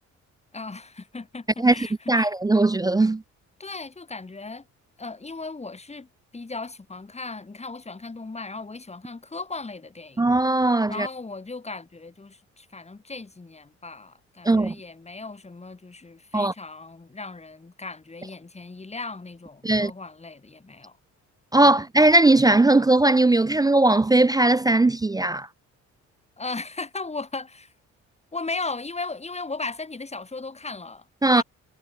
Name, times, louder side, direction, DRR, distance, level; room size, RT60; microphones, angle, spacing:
voice 1, 0.5-2.3 3.6-4.6 5.0-6.1 6.3-10.2 10.9-21.0 21.6-21.7 26.4-27.7 28.3-31.0 31.3-31.4, left 3 dB, 20° left, 4.7 m, -37 dB
voice 2, 2.1-3.2 10.2-11.1 14.4-14.8 16.3-16.5 19.6-19.9 21.5-25.5 31.2-31.4, right 2 dB, 15° right, 0.5 m, -19 dB
cardioid pair, 90°, 30 cm